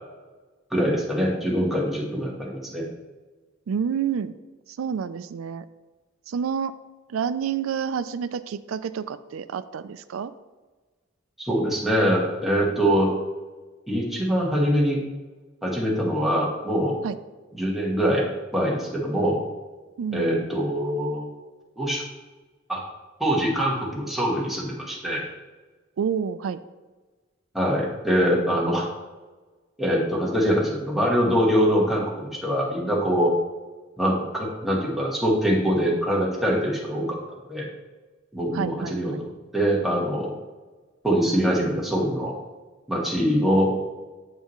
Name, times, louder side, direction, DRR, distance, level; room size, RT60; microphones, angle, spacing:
voice 1, 0.7-2.9 11.4-13.2 13.9-15.0 15.6-17.0 17.6-19.4 20.1-21.3 21.8-22.0 22.7-22.8 23.2-25.2 27.5-28.9 29.8-33.3 34.0-37.2 37.5-37.7 38.3-40.4 41.0-42.3 42.9-43.7, equal, ahead, -4 dB, 1.2 m, -23 dB
voice 2, 3.7-4.3 4.7-5.7 6.3-6.7 7.1-10.3 17.0-17.2 20.0-20.5 26.0-26.6 38.5-39.2, right 7 dB, 85° right, 14 dB, 0.4 m, -29 dB
7.7 x 5.6 x 3.0 m, 1.3 s
head